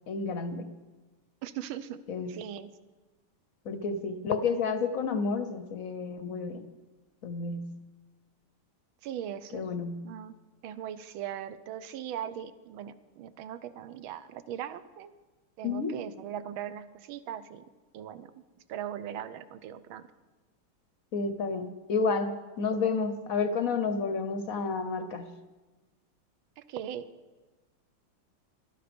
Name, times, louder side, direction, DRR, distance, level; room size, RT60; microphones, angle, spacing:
voice 1, 0.1-0.7 2.1-2.3 3.6-6.6 7.2-7.8 9.5-10.1 15.6-15.9 21.1-25.3, left 4 dB, 60° left, 9 dB, 0.9 m, -30 dB
voice 2, 1.4-2.0 2.3-2.7 9.0-9.7 10.0-10.3 10.6-15.2 15.6-17.6 17.9-18.3 18.7-20.1 26.6-27.1, right 10 dB, 75° right, 13 dB, 1.5 m, -39 dB
18.0 x 12.5 x 5.2 m, 1.2 s
omnidirectional pair, 2.3 m